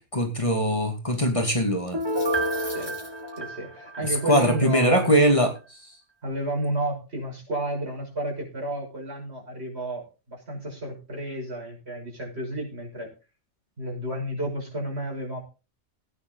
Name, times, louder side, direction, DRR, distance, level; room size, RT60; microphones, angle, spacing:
voice 1, 0.0-2.0 4.3-5.5, equal, 25° left, 3 dB, 2.6 m, -21 dB
sound 1, 1.8-3.4, right 1 dB, 85° right, 4.5 m, -42 dB
Piano, 1.9-4.6 5.0-5.1, equal, 20° right, 1.3 m, -29 dB
voice 2, 3.4-5.1 6.2-13.1 13.8-15.4, right 1 dB, 65° right, -1 dB, 6.4 m, -31 dB
17.5 x 9.5 x 3.9 m, 0.33 s
omnidirectional pair, 1.2 m